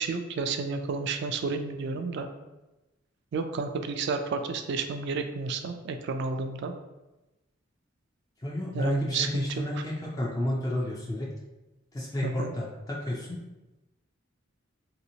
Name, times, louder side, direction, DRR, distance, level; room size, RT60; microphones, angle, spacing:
voice 1, 0.0-2.3 3.3-6.7 8.7-9.8 12.2-12.5, right 4 dB, 60° right, 7 dB, 0.3 m, -31 dB
voice 2, 8.4-11.3 11.9-13.4, left 1 dB, 20° left, -4 dB, 0.4 m, -31 dB
3.3 x 2.8 x 2.7 m, 1.0 s
head